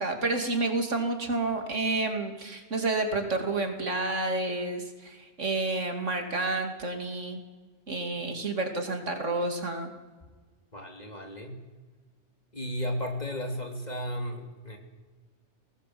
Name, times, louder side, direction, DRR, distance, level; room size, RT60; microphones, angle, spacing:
voice 1, 0.0-7.4 7.9-9.9, right 2 dB, 85° right, 5 dB, 2.9 m, -30 dB
voice 2, 10.7-11.6 12.5-14.8, equal, 35° left, 3 dB, 3.0 m, -34 dB
20.0 x 19.0 x 7.7 m, 1.4 s
omnidirectional pair, 1.2 m